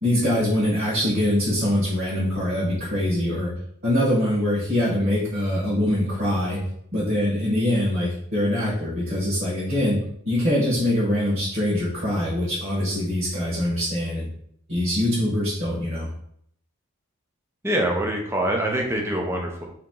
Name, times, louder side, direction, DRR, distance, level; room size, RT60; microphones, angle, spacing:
voice 1, 0.0-3.5 3.8-6.6 6.9-10.0 10.2-14.3 14.7-16.1, left 1 dB, 45° right, -7 dB, 1.2 m, -23 dB
voice 2, 17.6-19.7, right 1 dB, 10° right, 1 dB, 0.6 m, -24 dB
3.5 x 2.9 x 3.7 m, 0.69 s
head